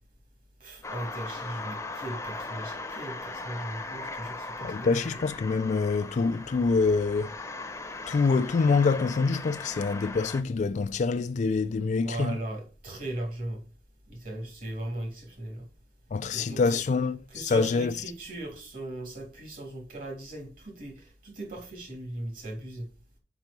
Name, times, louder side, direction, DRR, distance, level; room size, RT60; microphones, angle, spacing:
voice 1, 0.6-5.2 12.0-13.6 14.1-15.6 16.3-16.9 17.3-22.9, right 1 dB, 55° right, 3.2 m, -38 dB
sound 1, 0.8-10.4, left 3 dB, 15° left, 0.8 m, -39 dB
voice 2, 4.6-7.3 8.1-12.4 16.1-17.9, left 4 dB, 45° left, 0.3 m, -26 dB
6.0 x 5.5 x 5.2 m
head